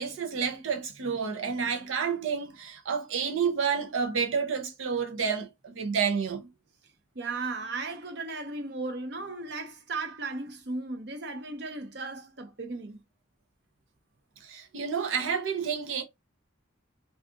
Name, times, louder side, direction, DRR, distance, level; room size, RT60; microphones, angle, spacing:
voice 1, 0.0-6.5 14.4-16.0, right 6 dB, 90° right, 0.6 m, -30 dB
voice 2, 7.1-13.0, right 3 dB, 55° right, 0.8 m, -36 dB
2.4 x 2.4 x 3.7 m
head